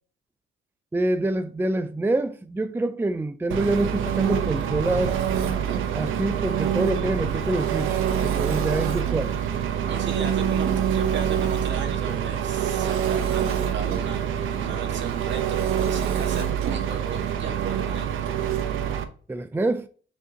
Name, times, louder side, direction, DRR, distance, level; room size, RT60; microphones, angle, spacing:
voice 1, 0.9-5.2 5.9-9.4 19.3-19.9, right 2 dB, 10° right, 0.5 m, -26 dB
Engine, 3.5-19.0, right 9 dB, 85° right, 0.9 m, -25 dB
voice 2, 9.8-14.3 14.6-18.1, right 5 dB, 65° right, 1.8 m, -36 dB
6.4 x 5.1 x 2.9 m
cardioid pair, 90°, 20 cm